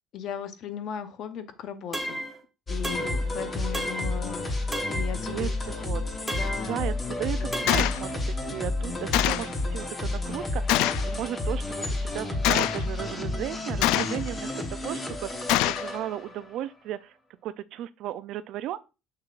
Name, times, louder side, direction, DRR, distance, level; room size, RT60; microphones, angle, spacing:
voice 1, 0.1-2.2 2.7-5.5 6.3-6.9 7.4-7.9, left 8 dB, 45° left, 0.8 m, -37 dB
sound 1, 1.9-2.4 2.8-3.3 3.7-4.2 4.7-5.2 6.3-6.7 7.5-8.0, equal, 5° right, 0.9 m, -33 dB
sound 2, 2.7-16.6, left 2 dB, 15° left, 1.1 m, -31 dB
voice 2, 5.3-6.0 6.7-6.9 7.2-10.6 11.0-17.2 17.4-18.8, right 12 dB, 55° right, 0.4 m, -35 dB
Gunshot gunfire, 7.7-8.0 9.1-9.5 10.7-11.1 12.4-12.9 13.8-14.3 15.5-15.9, left 15 dB, 90° left, 0.3 m, -24 dB
6.7 x 6.7 x 2.4 m
cardioid pair, 175°, 0 cm